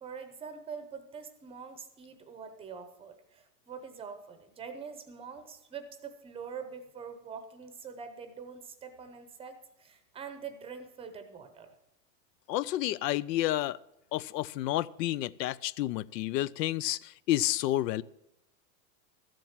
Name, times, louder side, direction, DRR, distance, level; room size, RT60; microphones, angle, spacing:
voice 1, 0.0-11.7, right 6 dB, 10° right, 0.7 m, -44 dB
voice 2, 12.5-13.8 14.1-18.0, left 15 dB, 90° left, 0.6 m, -30 dB
13.5 x 7.8 x 7.3 m
supercardioid pair, 160°, 48 cm